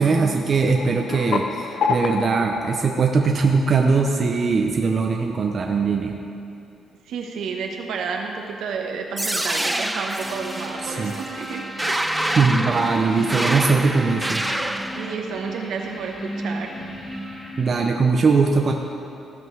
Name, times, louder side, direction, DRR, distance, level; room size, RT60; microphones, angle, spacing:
voice 1, 0.0-6.2 11.0-11.1 12.4-14.4 17.6-18.7, right 4 dB, 45° right, 2 dB, 0.7 m, -20 dB
sound 1, 0.7-4.1, left 5 dB, 65° left, 0.5 m, -28 dB
voice 2, 7.1-12.2 15.0-16.7, right 5 dB, 75° right, 2 dB, 1.1 m, -31 dB
sound 2, 9.2-15.1, right 1 dB, 10° right, 0.4 m, -27 dB
sound 3, 10.2-17.7, right 1 dB, 10° left, 1.5 m, -34 dB
15.5 x 5.3 x 4.7 m, 2.7 s
cardioid pair, 90°, 0 cm